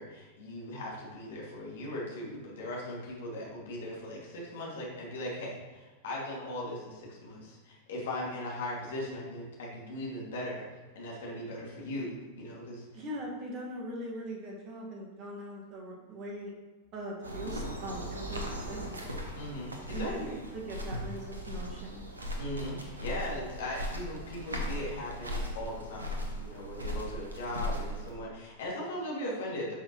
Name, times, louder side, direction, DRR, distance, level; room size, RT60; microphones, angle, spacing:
voice 1, 0.0-10.6 10.9-13.0 19.4-20.3 22.4-29.7, left 1 dB, 60° left, -4 dB, 2.4 m, -39 dB
voice 2, 12.9-16.5 16.9-18.9 19.9-22.0, right 1 dB, 35° right, -1 dB, 1.7 m, -41 dB
sound 1, 17.2-28.1, equal, 75° right, 1.1 m, -38 dB
10.0 x 5.7 x 3.1 m, 1.3 s
figure-of-eight pair, 90°, 0 cm